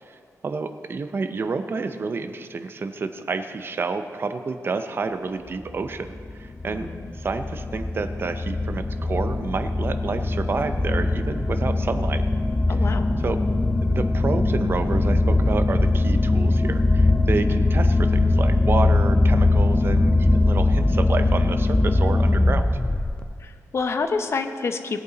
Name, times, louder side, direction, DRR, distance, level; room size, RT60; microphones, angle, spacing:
voice 1, 0.4-6.9 7.2-12.2 12.7-13.4 13.9-22.6, right 4 dB, 40° right, 8 dB, 0.6 m, -29 dB
sound 1, 5.7-23.2, left 2 dB, 15° left, 0.5 m, -21 dB
voice 2, 6.6-7.1 12.7-13.1 23.4-25.0, left 4 dB, 50° left, 7 dB, 0.8 m, -28 dB
17.5 x 8.3 x 4.0 m, 2.3 s
wide cardioid pair, 130°, 6 cm